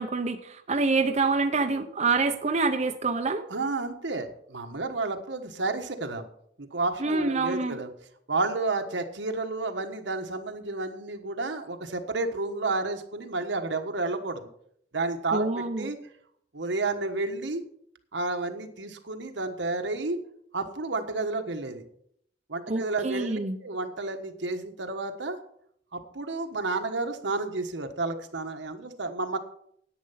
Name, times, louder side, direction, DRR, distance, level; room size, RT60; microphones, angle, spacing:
voice 1, 0.0-3.4 7.0-7.8 15.3-15.9 22.7-23.6, right 3 dB, 40° right, 5 dB, 0.7 m, -26 dB
voice 2, 3.5-6.3 6.6-7.9 8.3-14.5 14.9-15.5 15.8-16.0 16.5-17.6 18.1-20.2 20.5-21.8 22.5-25.4 25.9-29.4, right 3 dB, 80° right, 6 dB, 1.3 m, -31 dB
10.5 x 8.9 x 5.7 m, 0.68 s
head